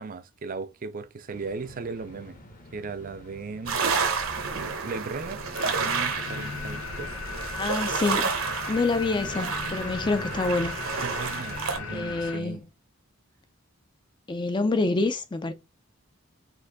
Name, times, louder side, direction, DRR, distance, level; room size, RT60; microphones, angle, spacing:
voice 1, 0.0-2.4 2.7-3.8 4.8-7.1 11.0-12.6, right 4 dB, 40° right, 0.5 m, -37 dB
sound 1, 1.3-12.3, left 1 dB, 40° left, 0.9 m, -43 dB
sound 2, 3.7-11.8, right 5 dB, 70° right, 0.9 m, -30 dB
sound 3, 5.5-12.4, left 5 dB, 90° left, 1.0 m, -38 dB
voice 2, 7.6-8.3 8.7-10.8 11.9-12.7 14.3-15.5, left 3 dB, 20° left, 0.4 m, -27 dB
4.3 x 2.6 x 3.9 m
head